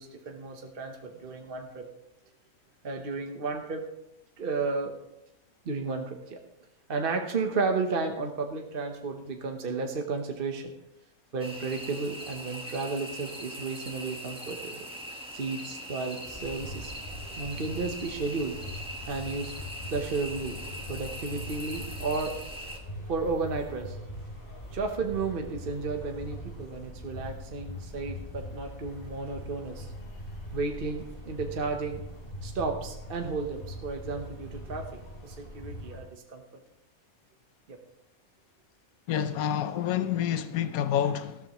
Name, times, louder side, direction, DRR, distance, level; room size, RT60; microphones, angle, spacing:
voice 1, 0.0-1.9 2.8-3.8 4.4-4.9 5.6-6.4 6.9-10.7 11.3-14.9 15.3-16.9 17.4-18.5 19.1-19.5 19.9-20.6 20.9-22.4 23.1-24.0 24.7-29.9 30.5-32.0 32.4-36.4 37.7-37.8, right 4 dB, 45° right, 1.1 m, -33 dB
sound 1, 11.4-22.8, equal, 5° right, 1.4 m, -41 dB
sound 2, 16.2-36.0, equal, 40° left, 4.1 m, -42 dB
voice 2, 39.1-41.4, left 9 dB, 80° left, 1.2 m, -28 dB
14.5 x 13.0 x 3.0 m
omnidirectional pair, 1.5 m